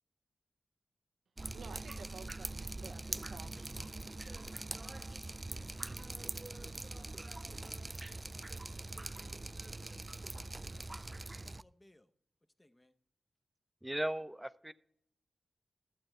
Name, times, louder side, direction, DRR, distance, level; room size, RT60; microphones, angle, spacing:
Drip, 1.4-11.6, right 2 dB, 35° right, 0.3 m, -43 dB
voice 1, 1.5-4.4, right 5 dB, 85° right, 0.6 m, -53 dB
voice 2, 4.3-7.6 8.3-10.5 10.8-12.1 12.6-12.9, left 1 dB, 20° left, 0.9 m, -69 dB
voice 3, 13.8-14.7, right 1 dB, 10° right, 0.7 m, -37 dB
12.5 x 7.8 x 4.3 m
cardioid pair, 40°, 0 cm